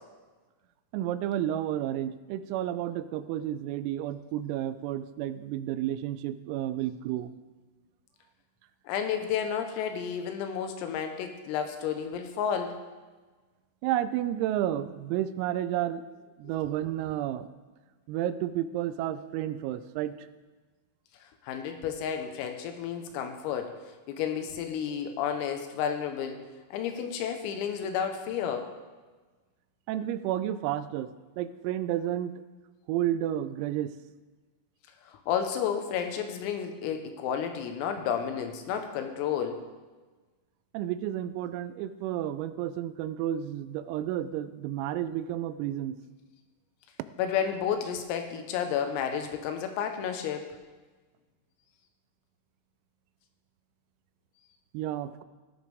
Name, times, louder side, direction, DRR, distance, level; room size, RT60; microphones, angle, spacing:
voice 1, 0.9-7.3 13.8-16.0 16.4-17.5 18.1-20.3 29.9-31.1 31.4-32.3 32.9-33.9 40.7-46.0 54.7-55.2, right 12 dB, 85° right, 12 dB, 3.3 m, -31 dB
voice 2, 8.9-12.8 21.4-23.7 24.1-26.4 26.7-28.7 35.1-39.6 47.2-50.5, left 8 dB, 85° left, 6 dB, 3.8 m, -31 dB
15.5 x 14.0 x 3.5 m, 1.3 s
omnidirectional pair, 6.0 m